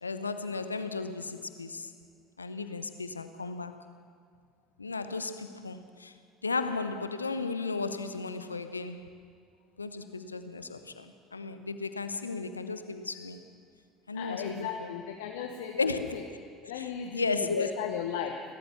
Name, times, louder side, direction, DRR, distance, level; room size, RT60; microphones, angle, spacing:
voice 1, 0.0-1.9 2.4-3.8 4.8-6.1 6.4-9.1 9.8-13.4 14.1-14.9 15.8-17.7, left 4 dB, 85° left, 0.8 m, -35 dB
voice 2, 14.1-16.2 16.7-17.3 17.6-18.4, left 8 dB, 70° left, 1.1 m, -36 dB
29.0 x 13.0 x 7.0 m
figure-of-eight pair, 60°, 0 cm